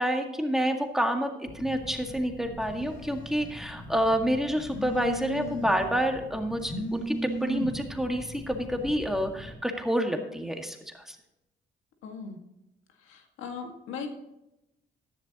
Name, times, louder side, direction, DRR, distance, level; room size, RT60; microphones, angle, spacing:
voice 1, 0.0-11.2, equal, ahead, 3 dB, 1.9 m, -28 dB
Telephone, 1.5-9.5, right 1 dB, 70° left, 2.8 m, -38 dB
voice 2, 12.0-12.4 13.0-14.1, left 6 dB, 90° left, 4 dB, 1.9 m, -38 dB
14.0 x 11.0 x 3.0 m, 0.89 s
cardioid pair, 90°, 20 cm